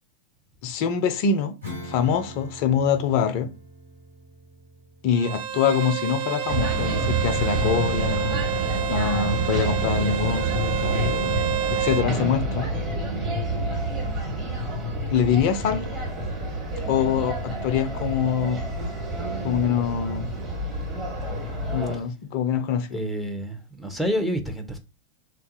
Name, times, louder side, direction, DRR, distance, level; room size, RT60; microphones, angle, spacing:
voice 1, 0.6-1.6 1.8-3.5 5.0-8.4 8.9-11.3 11.7-12.7 15.1-15.9 16.9-18.6 19.4-20.3 21.7-23.0, left 7 dB, 45° left, 0.5 m, -24 dB
Acoustic guitar / Strum, 1.6-7.6, left 1 dB, 85° right, 1.5 m, -44 dB
Bowed string instrument, 5.2-12.1, right 10 dB, 50° right, 0.4 m, -29 dB
sound 1, 6.5-22.0, right 1 dB, 25° right, 1.3 m, -28 dB
voice 2, 22.9-24.8, equal, ahead, 0.6 m, -28 dB
3.4 x 2.3 x 2.7 m
figure-of-eight pair, 90°, 0 cm